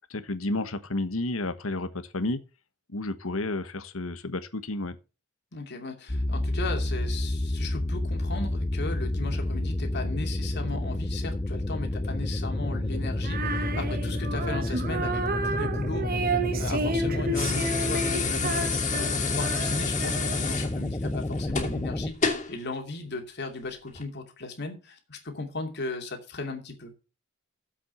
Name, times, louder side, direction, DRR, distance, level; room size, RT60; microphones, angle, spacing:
voice 1, 0.1-2.4 2.9-5.0, left 2 dB, 85° left, 1.2 m, -31 dB
voice 2, 5.5-26.9, left 3 dB, 55° left, 2.6 m, -36 dB
sound 1, 6.1-22.1, left 1 dB, 20° left, 0.6 m, -30 dB
Female singing, 13.2-20.6, right 2 dB, 45° right, 1.2 m, -31 dB
sound 2, 17.3-22.5 23.9-24.0, left 5 dB, 35° left, 2.8 m, -30 dB
7.7 x 7.3 x 7.1 m
head